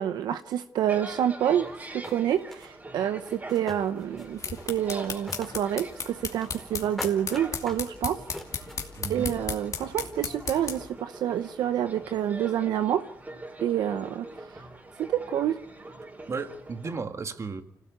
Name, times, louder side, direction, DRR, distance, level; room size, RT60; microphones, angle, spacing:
voice 1, 0.0-4.4 4.7-8.2 9.1-13.0 13.6-14.3 15.0-15.6, right 10 dB, 85° right, 10 dB, 0.8 m, -28 dB
sound 1, 0.9-17.0, right 2 dB, 25° right, 4.3 m, -44 dB
sound 2, 1.7-1.8 2.0-2.7 3.3-4.4 4.7-5.7 6.0-6.7 7.0-7.9 8.3-8.8, left 1 dB, 5° left, 2.6 m, -41 dB
sound 3, 4.1-10.9, left 5 dB, 55° left, 2.5 m, -36 dB
voice 2, 9.0-9.3 16.3-17.6, right 4 dB, 45° right, 8 dB, 1.8 m, -34 dB
25.5 x 17.0 x 8.2 m, 0.82 s
cardioid pair, 75°, 7 cm